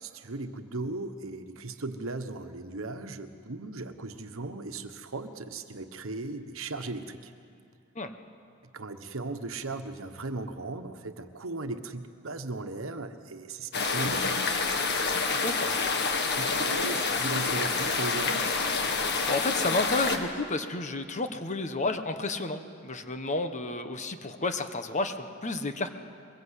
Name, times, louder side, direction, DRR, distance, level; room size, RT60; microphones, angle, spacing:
voice 1, 0.0-7.3 8.7-14.4 16.4-18.5, right 2 dB, 75° right, 8 dB, 1.3 m, -37 dB
sound 1, 13.7-20.2, left 4 dB, 55° left, 1.8 m, -28 dB
voice 2, 15.3-16.0 19.1-25.9, left 2 dB, 35° left, 8 dB, 1.2 m, -31 dB
22.5 x 21.5 x 8.3 m, 2.4 s
head